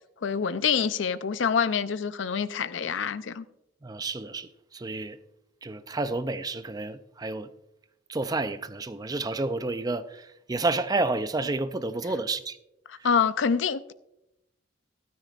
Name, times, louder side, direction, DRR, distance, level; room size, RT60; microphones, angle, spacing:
voice 1, 0.2-3.4 12.9-13.9, left 6 dB, 75° left, 0.5 m, -26 dB
voice 2, 3.8-5.2 5.6-7.5 8.1-12.6, right 2 dB, 20° right, 0.4 m, -30 dB
14.0 x 12.5 x 2.4 m
head